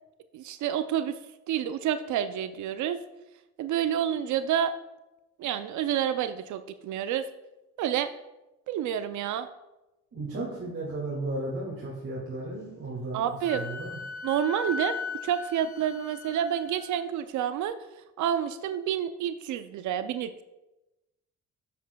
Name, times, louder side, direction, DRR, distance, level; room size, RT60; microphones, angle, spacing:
voice 1, 0.3-1.2 1.5-3.0 3.6-4.7 5.4-7.2 7.8-8.1 8.7-9.5 13.1-13.6 14.2-14.9 15.2-17.8 18.2-20.4, right 10 dB, 75° right, 11 dB, 0.5 m, -29 dB
voice 2, 10.1-13.3 13.5-14.0, right 2 dB, 50° right, -6 dB, 2.2 m, -34 dB
Wind instrument woodwind instrument, 13.4-16.9, left 4 dB, 10° left, 2.4 m, -37 dB
9.9 x 7.4 x 2.3 m, 1.0 s
cardioid pair, 90°, 30 cm